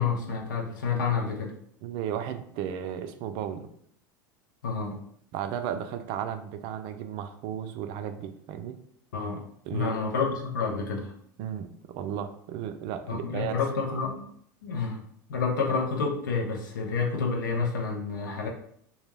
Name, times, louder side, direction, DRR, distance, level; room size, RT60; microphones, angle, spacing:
voice 1, 0.0-1.5 4.6-5.0 9.1-9.4 9.7-11.1 13.1-14.3 14.6-15.0 15.3-18.5, left 5 dB, 85° left, 1 dB, 0.5 m, -29 dB
voice 2, 1.8-3.7 5.3-8.8 9.7-10.0 11.4-13.6, right 9 dB, 55° right, 8 dB, 0.3 m, -34 dB
2.2 x 2.0 x 3.2 m, 0.66 s
hypercardioid pair, 90°, 10 cm